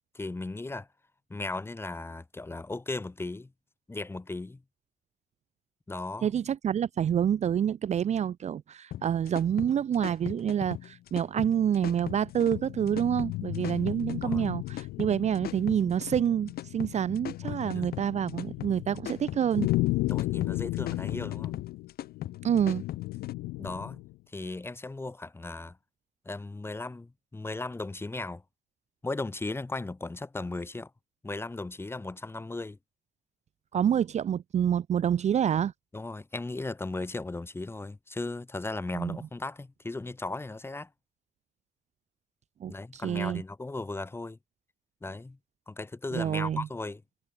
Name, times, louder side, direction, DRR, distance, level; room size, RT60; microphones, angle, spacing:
voice 1, 0.1-0.9 1.3-3.5 3.9-4.6 5.9-6.3 14.2-14.5 17.4-17.9 20.1-21.5 23.6-24.0 24.3-25.8 26.3-28.4 29.0-30.9 31.2-32.8 35.9-40.9 42.7-44.4 45.0-45.4 45.7-47.0, left 2 dB, 15° left, 2.4 m, -36 dB
voice 2, 6.2-19.7 22.4-22.8 33.7-35.7 38.9-39.2 42.6-43.4 46.1-46.7, right 9 dB, 40° right, 0.8 m, -27 dB
sound 1, 8.9-23.3, left 12 dB, 65° left, 5.9 m, -39 dB
sound 2, 11.5-24.1, left 20 dB, 90° left, 1.7 m, -35 dB
cardioid pair, 110°, 17 cm